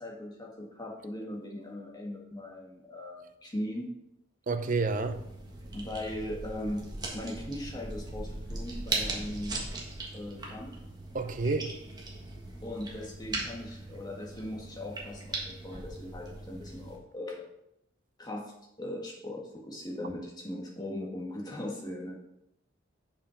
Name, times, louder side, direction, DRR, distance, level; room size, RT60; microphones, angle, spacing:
voice 1, 0.0-3.9 5.7-9.6 10.1-10.7 12.6-17.4 18.2-18.5 18.8-22.1, left 1 dB, 20° left, 1.9 m, -39 dB
voice 2, 4.5-5.2 11.1-11.7, right 3 dB, 45° right, 0.7 m, -29 dB
sound 1, 4.9-17.0, right 2 dB, 20° right, 1.5 m, -39 dB
7.0 x 5.7 x 5.8 m
head